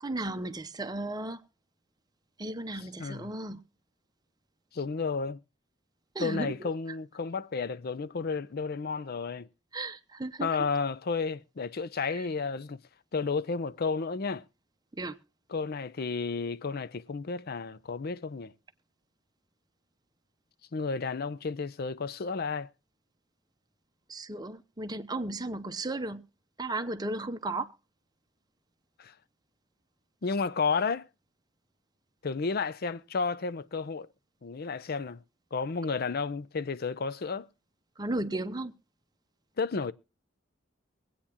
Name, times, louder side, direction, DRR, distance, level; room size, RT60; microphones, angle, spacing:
voice 1, 0.0-1.4 2.4-3.6 6.1-6.7 9.7-10.5 12.1-12.3 15.0-15.2 24.1-26.2 26.6-27.7 38.0-38.7, right 2 dB, 20° right, 0.8 m, -35 dB
voice 2, 3.0-3.3 4.7-5.4 6.2-9.5 10.4-12.8 13.1-14.4 15.5-18.5 20.7-22.7 29.0-29.1 30.2-31.1 32.2-34.1 34.4-35.2 35.5-37.5 39.6-39.9, left 4 dB, 50° left, 0.5 m, -32 dB
24.0 x 8.6 x 2.9 m
head